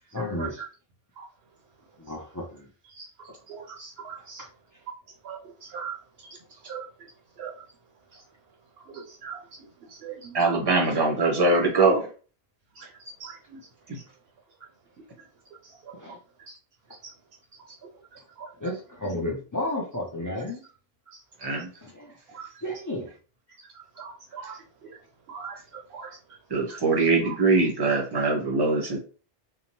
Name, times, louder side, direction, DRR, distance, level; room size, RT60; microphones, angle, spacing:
voice 1, 0.1-0.6 2.0-2.7 4.4-4.5 4.7-4.8 15.9-16.2 18.6-20.6 21.8-22.1 22.6-23.1, left 1 dB, 30° left, 0.3 m, -32 dB
voice 2, 3.5-4.4 5.2-5.4 5.7-5.9 6.7-6.8 7.4-7.5 8.9-9.4 10.0-10.3 12.8-12.9 13.2-13.6 17.0-17.1 18.4-18.5 22.3-22.5 24.0-24.6 25.3-25.6 25.9-26.1, right 6 dB, 75° right, 0.8 m, -39 dB
voice 3, 10.3-12.1 13.9-14.0 21.4-21.7 24.4-24.5 26.5-29.0, right 3 dB, 25° right, 0.7 m, -22 dB
2.7 x 2.0 x 3.0 m
omnidirectional pair, 1.0 m